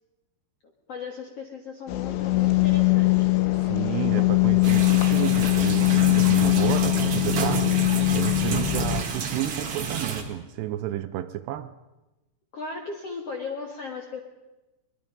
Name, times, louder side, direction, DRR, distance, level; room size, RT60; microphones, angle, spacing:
voice 1, 0.6-3.3 6.6-7.5 12.5-14.2, left 4 dB, 65° left, 1.6 m, -37 dB
sound 1, 1.9-9.0, left 21 dB, 90° left, 3.7 m, -21 dB
voice 2, 3.5-7.7 8.1-11.7, right 13 dB, 80° right, 2.7 m, -31 dB
sound 2, 4.6-10.2, right 6 dB, 50° right, 1.9 m, -30 dB
23.0 x 21.5 x 5.3 m
omnidirectional pair, 5.3 m